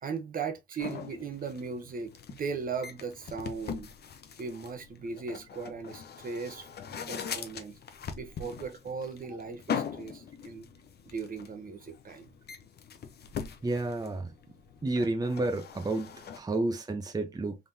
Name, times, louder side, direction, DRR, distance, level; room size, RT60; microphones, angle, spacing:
voice 1, 0.0-3.9 4.4-6.7 7.1-7.7 8.1-10.7 11.1-12.3, right 5 dB, 45° right, 1.0 m, -38 dB
sound 1, 0.8-16.4, left 7 dB, 55° left, 0.8 m, -41 dB
voice 2, 13.6-14.3 14.8-17.6, right 2 dB, 20° right, 0.8 m, -31 dB
3.7 x 3.5 x 2.7 m
cardioid pair, 90°, 20 cm